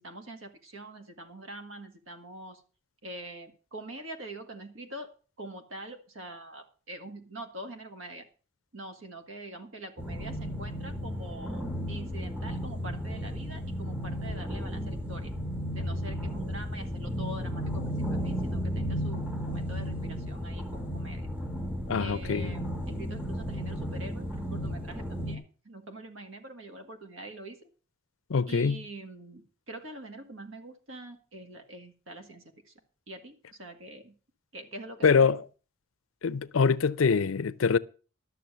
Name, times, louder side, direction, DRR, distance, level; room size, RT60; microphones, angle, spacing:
voice 1, 0.0-2.6 3.0-5.1 5.4-8.3 8.7-15.3 15.7-21.3 22.0-27.7 28.5-32.7 33.1-34.1 34.5-35.3, right 1 dB, 80° right, 1.9 m, -44 dB
sound 1, 10.0-25.3, equal, 5° right, 1.6 m, -34 dB
voice 2, 21.9-22.5 28.3-28.8 35.0-35.4 36.2-37.8, left 5 dB, 85° left, 0.5 m, -24 dB
12.0 x 6.8 x 6.7 m
head